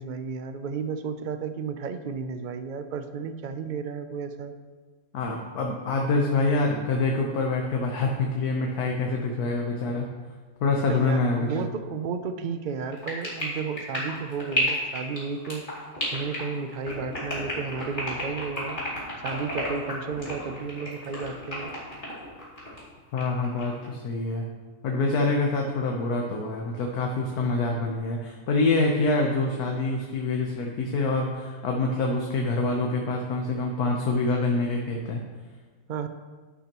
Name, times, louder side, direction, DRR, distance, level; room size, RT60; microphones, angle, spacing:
voice 1, 0.0-4.5 10.8-15.9 16.1-18.8 19.2-21.7 35.9-36.1, right 5 dB, 65° right, 9 dB, 0.4 m, -33 dB
voice 2, 5.1-10.1 10.6-11.6 23.1-24.4 24.8-35.2, left 3 dB, 80° left, 0 dB, 1.4 m, -26 dB
sound 1, 12.9-22.8 23.2-23.9, left 1 dB, 30° left, 3.0 m, -32 dB
11.0 x 9.9 x 3.0 m, 1.4 s
omnidirectional pair, 1.6 m